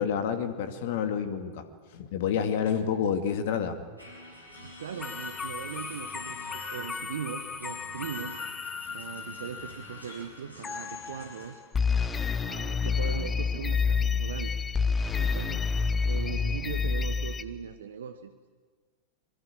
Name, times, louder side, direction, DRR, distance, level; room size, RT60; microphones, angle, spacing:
voice 1, 0.0-1.7 1.9-3.8, left 7 dB, 50° left, 9 dB, 2.2 m, -29 dB
sound 1, 4.0-11.5, left 1 dB, 90° right, 6.1 m, -47 dB
voice 2, 4.6-8.4 8.9-11.6 12.4-14.5 15.1-15.7 16.0-18.3, right 8 dB, 65° right, 9 dB, 1.2 m, -39 dB
sound 2, 5.0-9.9 10.6-11.4 11.7-17.4, left 5 dB, 20° left, 1.0 m, -30 dB
25.5 x 23.0 x 8.6 m, 1.4 s
figure-of-eight pair, 90°, 0 cm